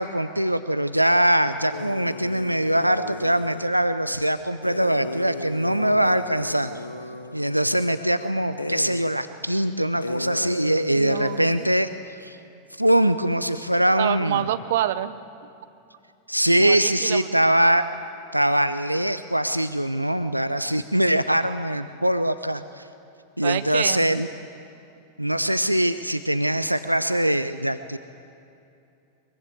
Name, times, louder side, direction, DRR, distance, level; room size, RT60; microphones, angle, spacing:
voice 1, 0.0-6.7 7.3-11.9 12.2-12.4 12.8-14.4 16.3-17.9 18.3-22.9 23.4-24.3 25.2-28.0, right 1 dB, 90° right, 12 dB, 0.6 m, -22 dB
sound 1, 1.7-3.7 4.6-8.2 8.6-9.1 9.5-9.6 10.0-11.7, left 2 dB, 80° left, 0.9 m, -34 dB
voice 2, 10.9-11.7 14.0-15.1 16.6-17.4 23.4-24.2, right 12 dB, 55° right, 12 dB, 0.9 m, -27 dB
22.5 x 22.5 x 8.3 m, 2.6 s
figure-of-eight pair, 90°, 0 cm